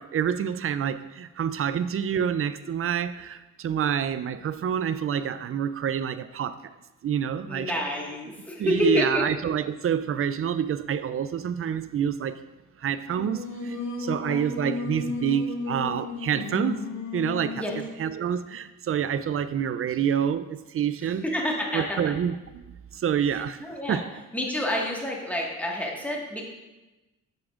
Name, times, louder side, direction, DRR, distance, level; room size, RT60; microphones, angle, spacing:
voice 1, 0.0-6.7 7.0-7.7 8.6-12.4 12.8-16.8 17.1-17.6 18.0-21.2 21.7-22.6 22.9-23.6 23.9-24.0, right 8 dB, 45° right, 13 dB, 0.4 m, -27 dB
voice 2, 7.5-9.2 14.3-14.4 17.5-17.7 21.2-22.1 23.3-24.0 24.3-26.4, left 1 dB, 5° left, -2 dB, 1.6 m, -28 dB
Singing, 13.1-17.9, left 4 dB, 70° left, 2.0 m, -34 dB
7.8 x 7.2 x 2.5 m, 1.1 s
cardioid pair, 75°, 32 cm